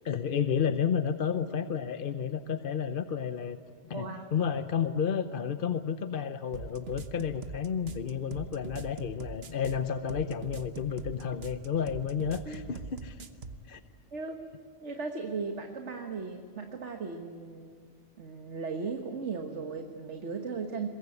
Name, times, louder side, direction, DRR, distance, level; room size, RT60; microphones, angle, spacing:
voice 1, 0.0-3.6 3.8-13.2 13.6-13.8, left 7 dB, 55° left, 10 dB, 0.9 m, -31 dB
voice 2, 3.9-4.3 12.5-12.6 14.1-14.4 14.8-17.8 18.2-20.9, right 4 dB, 90° right, 5 dB, 1.7 m, -37 dB
sound 1, 6.5-13.6, right 4 dB, 60° right, 1.3 m, -42 dB
23.0 x 21.5 x 9.8 m, 2.2 s
omnidirectional pair, 1.2 m